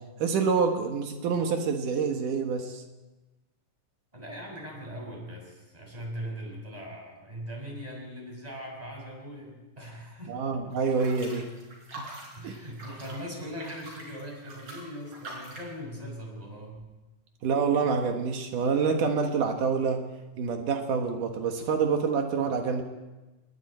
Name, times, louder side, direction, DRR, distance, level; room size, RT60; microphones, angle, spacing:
voice 1, 0.2-2.8 10.3-11.5 12.0-12.1 12.4-12.5 17.4-20.0 20.4-22.8, right 5 dB, 80° right, 4 dB, 3.1 m, -27 dB
voice 2, 4.1-11.0 12.3-16.8, equal, 10° right, 0 dB, 6.1 m, -40 dB
sound 1, 10.7-15.7, right 2 dB, 35° right, 6.7 m, -44 dB
29.0 x 21.0 x 4.4 m, 1.1 s
omnidirectional pair, 3.6 m